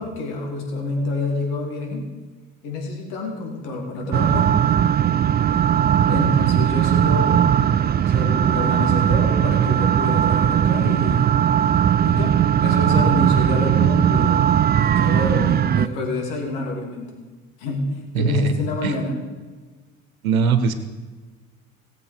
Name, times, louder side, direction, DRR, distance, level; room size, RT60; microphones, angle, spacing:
voice 1, 0.0-2.1 2.6-4.5 6.1-7.6 8.0-11.3 12.0-14.5 14.8-17.1 17.6-19.1, left 2 dB, 65° left, 0 dB, 3.1 m, -27 dB
sound 1, 4.1-15.9, right 9 dB, 25° right, 0.4 m, -18 dB
voice 2, 18.1-18.5 18.8-18.9 20.2-20.7, right 6 dB, 85° right, 9 dB, 1.0 m, -21 dB
17.5 x 7.6 x 5.0 m, 1.3 s
figure-of-eight pair, 55°, 41 cm